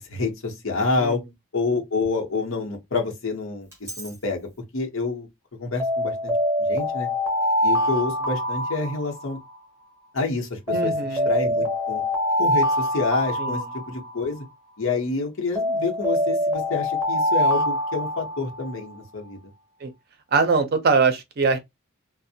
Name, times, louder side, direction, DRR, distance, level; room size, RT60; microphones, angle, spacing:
voice 1, 0.1-1.2 1.5-3.7 4.0-5.3 5.6-6.3 6.6-7.1 7.6-9.4 10.1-12.0 12.4-14.4 14.8-19.4, left 3 dB, 70° left, 0.8 m, -28 dB
Alarm, 3.7-4.1 5.8-9.6 10.7-14.4 15.5-18.8, equal, 15° right, 0.7 m, -24 dB
voice 2, 10.7-11.3 13.4-13.6 19.8-19.9 20.3-21.6, right 4 dB, 45° right, 0.5 m, -22 dB
2.5 x 2.0 x 2.7 m
head